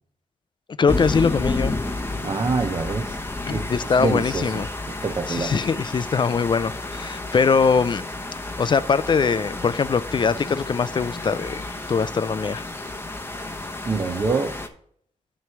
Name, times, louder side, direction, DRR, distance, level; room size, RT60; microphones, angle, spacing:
voice 1, 0.8-1.9 3.5-4.7 5.3-8.1 8.6-12.7, left 5 dB, 35° left, 0.3 m, -22 dB
sound 1, 0.9-14.7, left 2 dB, 20° left, 0.8 m, -31 dB
voice 2, 2.2-3.2 3.5-4.6 5.0-5.6 13.8-14.5, right 4 dB, 35° right, 0.7 m, -25 dB
9.2 x 3.1 x 5.8 m
cardioid pair, 85°, 13 cm